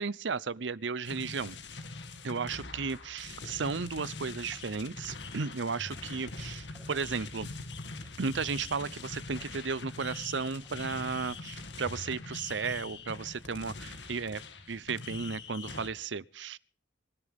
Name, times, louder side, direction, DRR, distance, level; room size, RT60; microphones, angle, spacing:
voice 1, 0.0-1.6 2.2-7.5 8.2-14.4 14.7-16.6, right 5 dB, 80° right, 0.7 m, -34 dB
sound 1, 1.0-15.9, left 3 dB, 75° left, 2.3 m, -43 dB
sound 2, 4.4-15.4, left 1 dB, ahead, 1.7 m, -54 dB
24.5 x 14.0 x 3.6 m
head